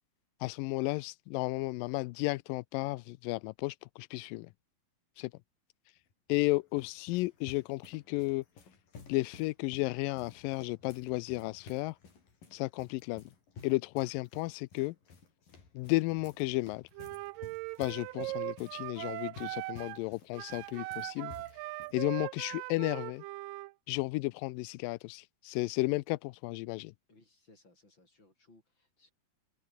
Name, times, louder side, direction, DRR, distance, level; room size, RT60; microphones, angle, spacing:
voice 1, 0.4-4.5 5.2-5.3 6.3-8.4 9.1-12.0 12.5-13.2 13.6-15.0 15.8-16.8 17.8-21.3 21.9-23.2 23.9-26.9, left 21 dB, 85° left, 2.0 m, -33 dB
sound 1, 5.9-22.0, left 5 dB, 60° left, 6.9 m, -55 dB
Wind instrument woodwind instrument, 16.9-20.0 20.3-23.7, right 20 dB, 85° right, 1.9 m, -40 dB
voice 2, 27.1-29.1, left 2 dB, 25° left, 8.8 m, -63 dB
open air
omnidirectional pair, 4.6 m